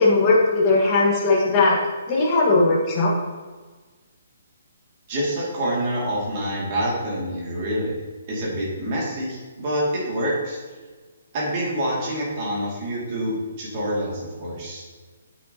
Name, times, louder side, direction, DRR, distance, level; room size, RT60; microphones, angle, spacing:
voice 1, 0.0-1.8 2.1-3.1, left 3 dB, 20° left, -4 dB, 1.4 m, -18 dB
voice 2, 5.1-8.0 8.3-10.6 11.3-14.8, equal, 25° right, -4 dB, 2.3 m, -26 dB
9.0 x 8.6 x 2.9 m, 1.4 s
hypercardioid pair, 180°, 0 cm